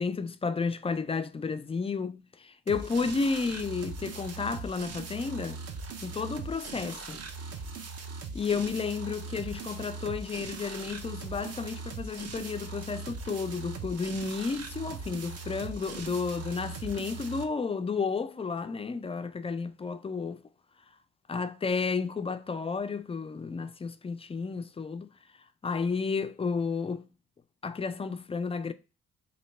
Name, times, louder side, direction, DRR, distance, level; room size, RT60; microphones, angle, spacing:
voice 1, 0.0-5.6 6.0-7.2 8.3-20.4 21.3-25.1 25.6-27.0 27.6-28.7, left 5 dB, 20° left, 0.3 m, -32 dB
sound 1, 2.7-17.4, right 4 dB, 45° right, 0.7 m, -40 dB
3.1 x 2.7 x 4.1 m
hypercardioid pair, 50°, 35 cm